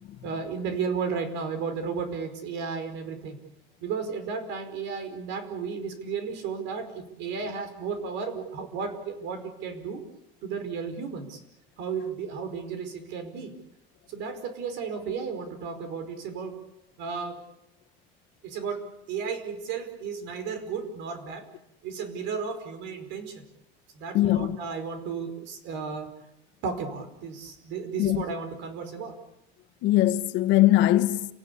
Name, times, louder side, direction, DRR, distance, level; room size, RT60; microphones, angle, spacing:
voice 1, 0.2-3.4 3.8-10.0 10.4-11.4 11.8-13.5 14.1-16.6 17.0-17.4 18.4-21.5 21.8-23.4 23.9-26.1 26.6-29.2, right 5 dB, 70° right, 5.0 m, -34 dB
voice 2, 24.1-24.6 28.0-28.2 29.8-31.3, left 15 dB, 65° left, 1.5 m, -21 dB
30.0 x 18.0 x 8.5 m
cardioid pair, 170°, 20 cm